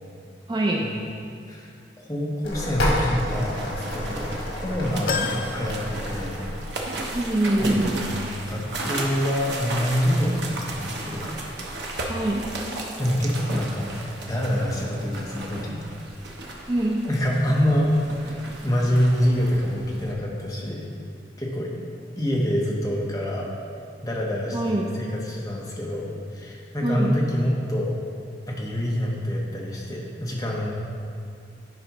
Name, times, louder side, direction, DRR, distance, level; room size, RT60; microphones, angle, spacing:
voice 1, 0.5-0.9 7.1-7.9 12.1-12.4 16.7-17.0 24.5-24.8 26.8-27.1, right 1 dB, 25° right, -1 dB, 0.4 m, -23 dB
voice 2, 2.0-6.4 7.6-8.1 8.4-11.3 13.0-13.8 14.2-15.8 17.1-17.9 18.2-20.9 21.4-21.7 22.2-23.5 24.0-27.9 28.5-30.7, equal, 20° left, -3 dB, 1.0 m, -26 dB
sound 1, 2.4-12.5, left 1 dB, 80° left, 1.6 m, -33 dB
sound 2, 3.3-20.1, right 2 dB, 70° right, 0.9 m, -35 dB
sound 3, 5.1-6.7 7.1-7.2 8.4-8.5, left 5 dB, 50° left, 0.4 m, -32 dB
10.5 x 5.1 x 3.0 m, 2.4 s
head